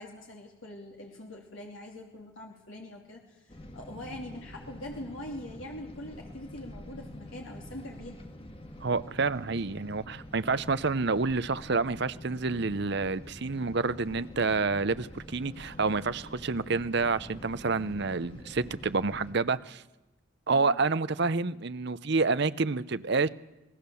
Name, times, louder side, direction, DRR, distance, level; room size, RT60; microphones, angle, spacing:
voice 1, 0.0-8.2 20.5-20.8, left 1 dB, 70° left, 2.9 m, -43 dB
sound 1, 3.5-19.3, left 1 dB, 25° left, 1.6 m, -46 dB
voice 2, 8.8-19.8 20.5-23.3, right 4 dB, 55° right, 0.7 m, -28 dB
26.5 x 19.0 x 7.0 m
head